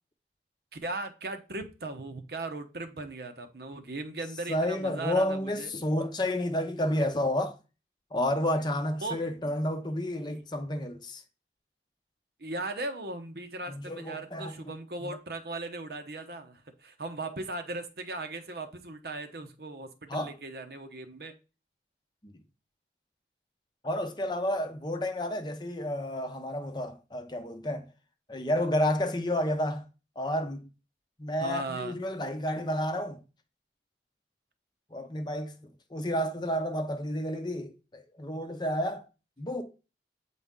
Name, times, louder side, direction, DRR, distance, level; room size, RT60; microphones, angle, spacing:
voice 1, 0.7-5.7 9.0-9.3 10.3-10.4 12.4-21.3 31.4-32.0, right 2 dB, 60° right, 0.9 m, -38 dB
voice 2, 4.5-7.6 8.1-11.2 13.7-14.7 15.0-15.2 20.1-20.3 22.2-22.4 23.8-27.9 28.3-29.8 30.2-30.7 31.2-33.2 34.9-39.1 39.4-39.6, left 1 dB, 25° left, 0.7 m, -31 dB
8.4 x 4.1 x 3.7 m
head